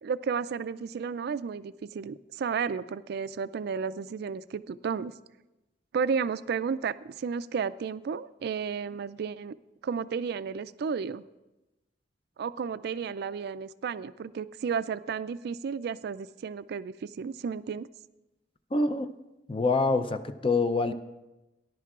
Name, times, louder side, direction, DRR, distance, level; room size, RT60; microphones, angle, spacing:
voice 1, 0.0-5.1 5.9-9.6 9.8-11.2 12.4-17.9, right 6 dB, 60° right, 16 dB, 0.3 m, -32 dB
voice 2, 18.7-19.1 19.5-20.9, left 3 dB, 30° left, 10 dB, 0.5 m, -25 dB
18.0 x 11.0 x 2.4 m, 1.0 s
head